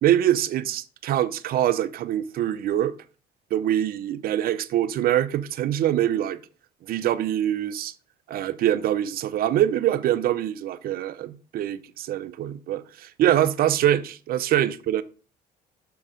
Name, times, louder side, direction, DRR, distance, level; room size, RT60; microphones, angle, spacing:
voice 1, 0.0-2.9 3.5-6.4 6.9-7.9 8.3-15.0, right 11 dB, 60° right, 0.6 m, -24 dB
6.4 x 4.7 x 5.0 m
cardioid pair, 110°, 17 cm